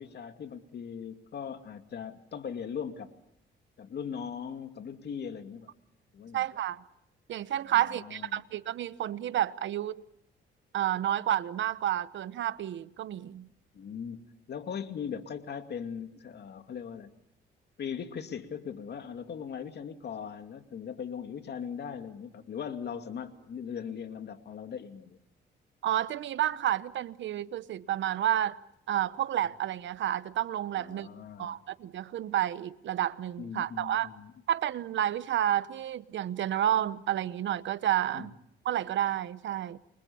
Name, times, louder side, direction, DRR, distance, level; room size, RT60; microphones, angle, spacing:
voice 1, 0.0-3.1 3.8-5.7 6.1-6.4 7.7-8.4 13.7-17.1 17.8-25.2 30.7-31.6 33.4-34.3 38.1-38.3, left 7 dB, 55° left, 2.5 m, -39 dB
voice 2, 6.3-6.8 7.3-10.0 10.7-13.5 25.8-28.6 28.9-31.1 31.4-34.1 34.5-38.3 38.6-39.8, right 11 dB, 70° right, 1.1 m, -30 dB
29.5 x 24.5 x 7.1 m
cardioid pair, 90°, 20 cm